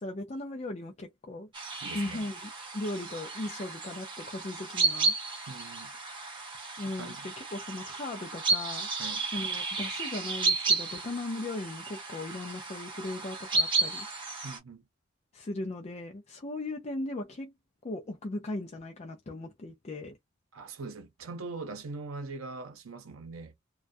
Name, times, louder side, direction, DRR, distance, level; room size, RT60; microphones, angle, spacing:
voice 1, 0.0-1.5 1.9-5.1 6.8-8.9 9.3-14.1 15.3-17.5 17.8-20.2, left 2 dB, 35° left, 0.4 m, -38 dB
sound 1, 1.5-14.6, right 3 dB, 25° right, 1.1 m, -33 dB
voice 2, 1.8-2.2 5.5-5.9 7.0-7.3 9.0-9.3 14.4-14.8 20.5-23.5, right 3 dB, 90° right, 0.6 m, -41 dB
2.2 x 2.2 x 2.5 m
head